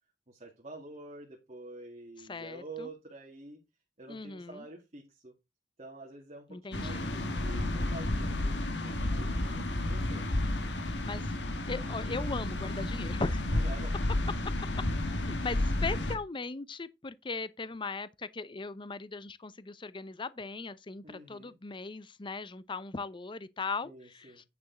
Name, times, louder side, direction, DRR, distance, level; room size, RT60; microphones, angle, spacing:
voice 1, 0.3-3.6 4.0-5.3 5.8-10.2 13.5-14.0 21.0-21.6 23.8-24.4, right 2 dB, 40° right, 2.2 m, -48 dB
voice 2, 2.3-2.9 4.1-4.6 6.5-7.1 11.0-11.3 11.7-13.5 15.1-24.3, left 3 dB, 30° left, 0.6 m, -38 dB
sound 1, 6.7-16.2, left 1 dB, 75° left, 1.8 m, -31 dB
9.6 x 7.0 x 4.0 m
head